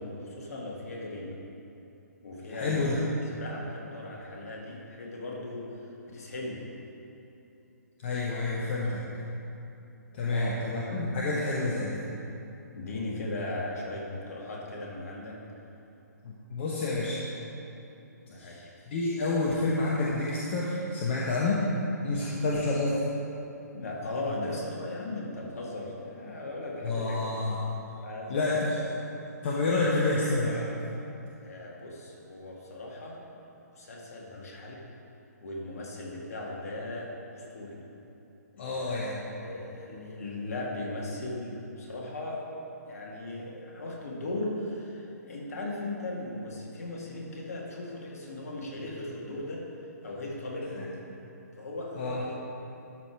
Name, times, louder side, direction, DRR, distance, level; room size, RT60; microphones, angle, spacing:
voice 1, 0.0-1.3 2.2-3.0 3.2-6.6 10.3-10.5 12.7-15.4 18.2-18.6 23.7-27.2 28.0-28.7 31.4-33.2 33.8-34.8 35.4-37.8 38.5-39.0 39.4-42.4 42.9-49.6 50.0-50.9 51.6-52.3, left 2 dB, 60° left, -3 dB, 2.1 m, -37 dB
voice 2, 2.5-3.0 8.0-9.0 10.1-12.0 16.2-17.2 18.4-18.6 18.9-21.6 22.0-23.0 26.8-27.6 28.3-28.8 29.4-30.6 38.6-39.2 52.0-52.2, left 2 dB, 40° left, -5 dB, 1.1 m, -28 dB
12.5 x 5.1 x 4.6 m, 2.9 s
figure-of-eight pair, 135°, 9 cm